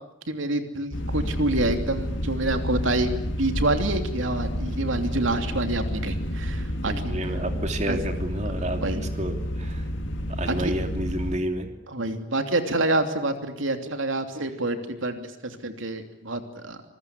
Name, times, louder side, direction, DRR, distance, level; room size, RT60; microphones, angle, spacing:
voice 1, 0.3-3.1 3.4-7.2 7.9-8.0 8.8-9.0 10.6-10.7 11.9-16.8, right 2 dB, 75° right, 6 dB, 3.0 m, -27 dB
sound 1, 0.9-11.4, equal, 70° left, 2.5 m, -30 dB
voice 2, 6.8-8.8 9.2-9.9 10.3-11.7, right 1 dB, 35° right, 5 dB, 2.8 m, -30 dB
26.5 x 22.5 x 9.8 m, 0.80 s
head